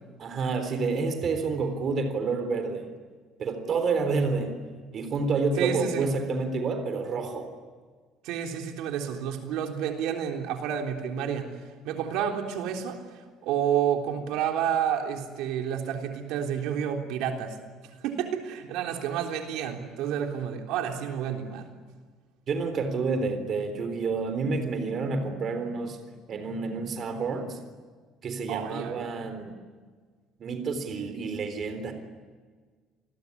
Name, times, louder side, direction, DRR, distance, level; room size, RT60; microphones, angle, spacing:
voice 1, 0.2-2.9 3.4-4.5 4.9-7.5 22.5-26.0 26.3-27.6 28.2-29.5 30.4-31.9, right 4 dB, 35° right, 7 dB, 3.8 m, -29 dB
voice 2, 5.6-6.1 8.2-11.5 11.8-17.6 18.0-21.7 28.5-29.1, right 9 dB, 75° right, 3 dB, 3.6 m, -30 dB
29.0 x 21.0 x 9.8 m, 1.5 s
cardioid pair, 165°, 0 cm